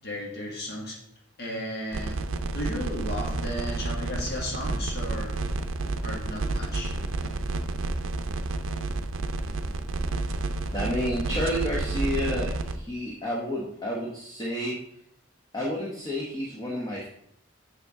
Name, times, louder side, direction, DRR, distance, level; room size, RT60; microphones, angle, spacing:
voice 1, 0.0-1.0 1.4-2.2 2.5-5.3 6.0-6.9, left 1 dB, 50° left, -2 dB, 1.7 m, -34 dB
sound 1, 1.9-12.8, right 2 dB, 80° right, 0.5 m, -30 dB
voice 2, 10.7-14.8 15.5-17.1, equal, 20° left, -4 dB, 0.9 m, -30 dB
6.7 x 5.8 x 3.6 m, 0.71 s
head